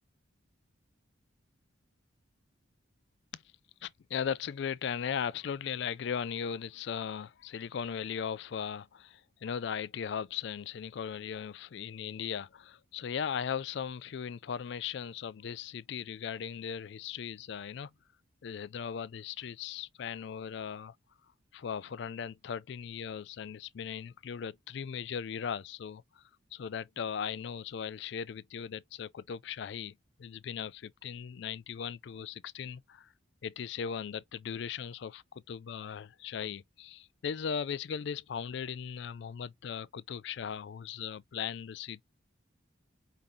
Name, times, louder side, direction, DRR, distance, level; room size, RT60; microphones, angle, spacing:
voice 1, 3.8-17.9 18.4-20.9 21.5-26.2 26.5-33.1 33.4-42.0, left 7 dB, 60° left, 0.3 m, -38 dB
5.0 x 3.8 x 2.7 m
head